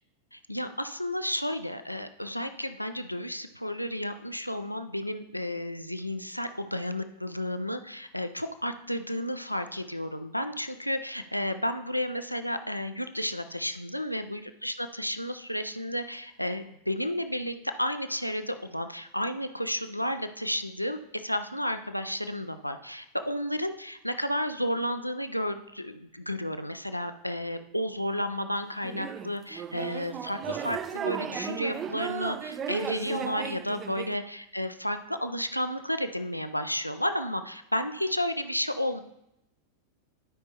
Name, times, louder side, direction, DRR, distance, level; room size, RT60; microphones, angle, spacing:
voice 1, 0.3-39.0, left 1 dB, 90° left, 9 dB, 0.4 m, -32 dB
sound 1, 28.8-34.2, right 8 dB, 25° right, 0.4 m, -35 dB
12.5 x 5.3 x 2.8 m, 0.82 s
figure-of-eight pair, 90°, 0 cm